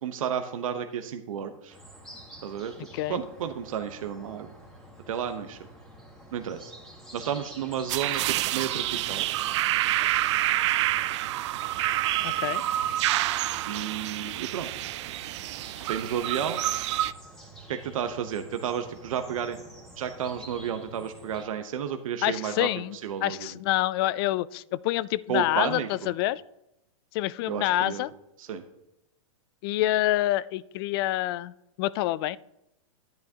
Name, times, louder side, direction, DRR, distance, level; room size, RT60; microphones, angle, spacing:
voice 1, 0.0-1.8 2.4-2.7 3.1-4.5 5.1-5.6 6.3-6.7 7.1-9.3 13.7-14.9 15.8-16.6 17.7-19.6 20.0-22.7 23.0-23.5 25.3-26.1 27.5-28.1 28.4-28.6, right 8 dB, 75° right, 7 dB, 0.9 m, -32 dB
sound 1, 1.7-21.4, right 1 dB, ahead, 1.9 m, -48 dB
sound 2, 7.9-17.1, right 14 dB, 55° right, 0.4 m, -28 dB
voice 2, 12.2-12.6 22.2-26.4 27.1-28.1 29.6-32.4, left 15 dB, 45° left, 20 dB, 0.4 m, -27 dB
10.5 x 10.5 x 2.8 m, 0.87 s
hypercardioid pair, 135°, 17 cm